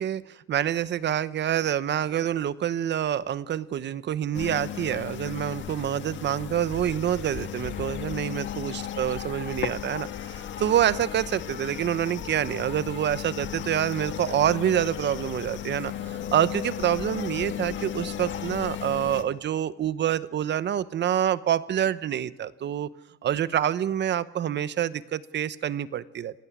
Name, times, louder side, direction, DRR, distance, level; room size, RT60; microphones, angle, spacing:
voice 1, 0.0-22.9 23.2-26.4, right 10 dB, 60° right, 16 dB, 1.0 m, -27 dB
sound 1, 4.3-19.2, left 10 dB, 70° left, 1.7 m, -35 dB
27.0 x 16.0 x 9.6 m, 1.0 s
cardioid pair, 90°, 20 cm